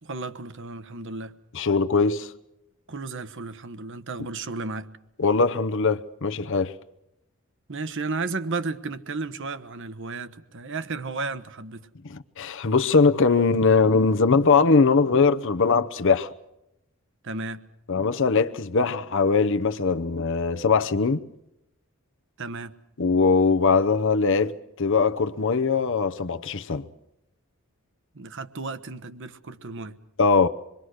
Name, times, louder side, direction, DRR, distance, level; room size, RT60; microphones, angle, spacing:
voice 1, 0.0-1.4 2.9-4.9 7.7-11.9 17.2-17.7 22.4-22.7 28.1-30.0, right 3 dB, 60° right, 1.2 m, -33 dB
voice 2, 1.5-2.3 5.2-6.7 12.1-16.3 17.9-21.2 23.0-24.5 24.8-26.8 30.2-30.5, left 4 dB, 60° left, 0.8 m, -21 dB
27.0 x 22.0 x 6.4 m
head